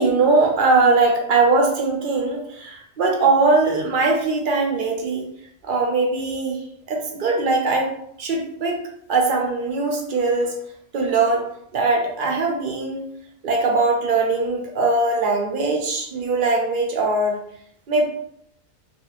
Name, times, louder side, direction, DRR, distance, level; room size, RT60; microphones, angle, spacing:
voice 1, 0.0-5.3 5.6-6.6 6.9-7.9 8.2-8.8 9.1-10.5 10.9-11.4 11.7-13.1 13.4-17.4 17.9-18.0, right 3 dB, 55° right, 0 dB, 0.7 m, -20 dB
2.4 x 2.3 x 3.1 m, 0.69 s
omnidirectional pair, 1.2 m